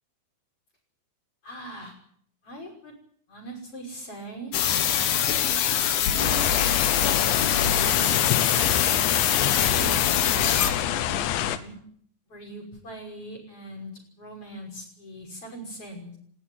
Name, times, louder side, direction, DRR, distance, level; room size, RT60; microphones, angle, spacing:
voice 1, 1.4-2.0 2.4-2.9 3.3-4.5 5.3-5.6 5.9-8.3 8.8-11.8 12.3-13.9 14.2-16.2, right 1 dB, 30° left, 1 dB, 6.5 m, -40 dB
sound 1, 4.5-10.7, left 10 dB, 65° left, 3.3 m, -24 dB
sound 2, 6.2-11.6, left 11 dB, 85° left, 3.5 m, -26 dB
20.0 x 16.5 x 9.7 m, 0.63 s
omnidirectional pair, 5.0 m